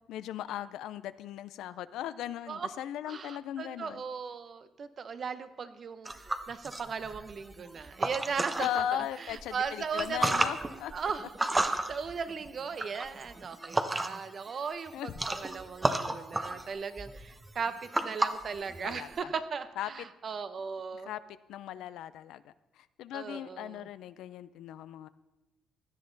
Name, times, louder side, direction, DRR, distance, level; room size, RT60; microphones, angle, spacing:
voice 1, 0.1-4.0 8.6-10.9 14.9-15.1 18.8-19.3 19.8-19.9 20.9-21.2 21.5-25.1, left 11 dB, 85° left, 15 dB, 0.5 m, -37 dB
voice 2, 3.1-11.3 11.6-21.1 23.1-23.9, right 6 dB, 50° right, 11 dB, 0.9 m, -38 dB
sound 1, 6.0-8.8 9.3-14.4 14.6-19.2, right 2 dB, 20° right, 0.9 m, -33 dB
17.0 x 11.0 x 4.0 m, 1.0 s
cardioid pair, 90°, 0 cm